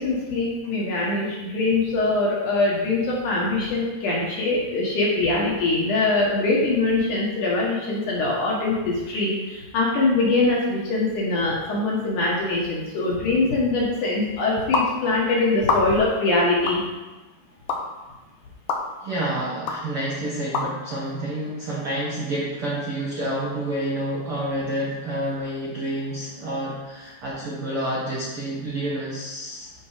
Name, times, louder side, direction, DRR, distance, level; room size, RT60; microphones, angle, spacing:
voice 1, 0.0-16.8, left 2 dB, 60° left, -4 dB, 2.5 m, -23 dB
sound 1, 14.7-14.9 15.6-16.1 16.7-16.8 17.7-17.8 18.7-18.8 19.7-19.8 20.5-20.7, left 4 dB, 75° left, 1.9 m, -23 dB
voice 2, 19.0-29.7, right 1 dB, 70° right, -5 dB, 1.3 m, -29 dB
12.0 x 4.5 x 5.0 m, 1.1 s
omnidirectional pair, 4.9 m